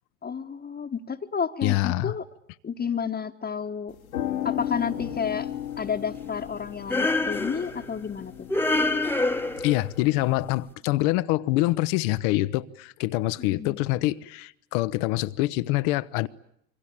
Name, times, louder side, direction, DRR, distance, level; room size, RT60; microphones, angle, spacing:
voice 1, 0.2-2.2 2.6-4.0 4.4-5.5 5.8-8.5 13.5-13.8, left 6 dB, 25° left, 1.4 m, -31 dB
voice 2, 1.6-2.1 9.6-16.3, left 18 dB, 60° left, 1.0 m, -25 dB
sound 1, 3.9-9.9, left 11 dB, 80° left, 2.1 m, -35 dB
sound 2, 6.9-7.9 8.5-9.9, left 2 dB, 5° left, 1.2 m, -26 dB
27.0 x 24.0 x 8.7 m
figure-of-eight pair, 65°, 41 cm